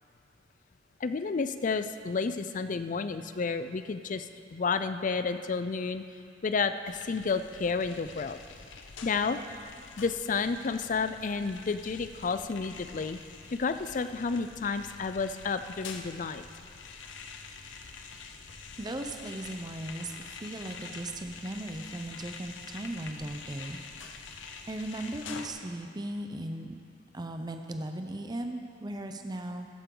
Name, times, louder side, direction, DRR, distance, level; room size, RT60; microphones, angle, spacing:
voice 1, 1.0-6.0 6.4-8.4 9.0-9.4 10.0-13.2 13.5-16.4, left 4 dB, 40° left, 10 dB, 0.4 m, -31 dB
sound 1, 6.9-25.5, left 5 dB, 75° left, 0.8 m, -46 dB
voice 2, 18.8-23.8 24.7-26.7 27.1-29.7, right 1 dB, 20° right, 5 dB, 0.6 m, -37 dB
15.0 x 11.5 x 3.9 m, 2.3 s
head